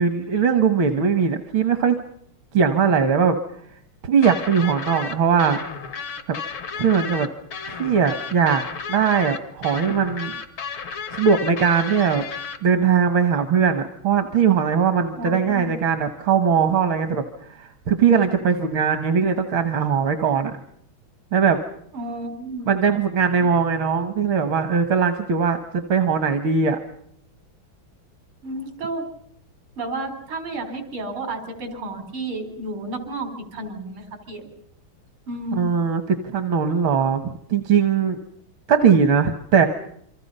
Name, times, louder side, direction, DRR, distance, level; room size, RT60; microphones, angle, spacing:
voice 1, 0.0-2.0 2.5-3.4 4.0-5.6 6.3-6.4 6.8-7.3 7.7-8.6 8.9-10.3 11.2-12.3 12.6-17.2 17.5-20.6 21.3-21.6 22.7-26.8 35.5-38.2 38.7-39.7, right 6 dB, 75° right, 7 dB, 2.2 m, -20 dB
sound 1, 4.2-12.6, left 6 dB, 75° left, 2.4 m, -33 dB
voice 2, 15.2-15.7 21.9-22.7 28.4-29.1 29.8-34.5 35.3-35.7, right 2 dB, 90° right, 7 dB, 4.8 m, -32 dB
28.0 x 24.5 x 5.5 m, 0.68 s
omnidirectional pair, 2.3 m